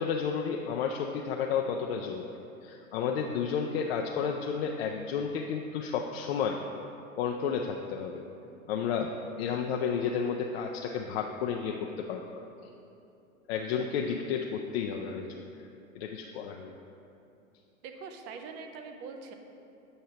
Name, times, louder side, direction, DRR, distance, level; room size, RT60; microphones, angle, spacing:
voice 1, 0.0-2.3 2.6-6.6 7.2-8.2 8.7-9.1 9.4-12.4 13.5-15.4 15.9-16.8, left 6 dB, 50° left, 1 dB, 0.4 m, -32 dB
voice 2, 17.8-19.3, right 5 dB, 30° right, 5 dB, 0.5 m, -43 dB
7.8 x 5.5 x 2.8 m, 2.7 s
hypercardioid pair, 105°, 42 cm